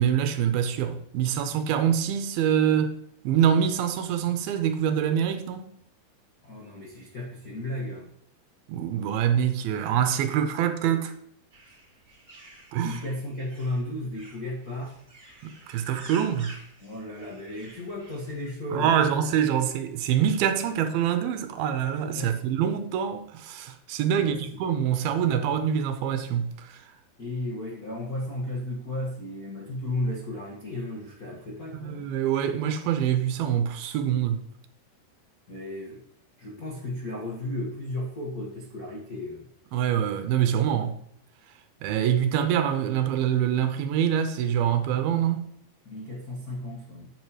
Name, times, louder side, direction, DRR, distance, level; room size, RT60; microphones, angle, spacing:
voice 1, 0.0-3.0 3.2-5.7 8.7-11.1 12.7-13.0 15.4-16.6 18.7-26.9 31.7-34.4 39.7-41.0 41.8-45.4, right 9 dB, 85° right, 2.5 m, -25 dB
voice 2, 6.4-8.1 12.8-15.0 16.8-19.1 19.6-19.7 22.1-22.4 24.1-24.7 27.2-32.1 35.5-36.0 36.4-39.5 45.8-47.1, left 1 dB, 75° left, 0.8 m, -34 dB
sound 1, 11.5-18.5, right 2 dB, 30° right, 1.9 m, -50 dB
10.5 x 8.0 x 3.0 m
omnidirectional pair, 4.5 m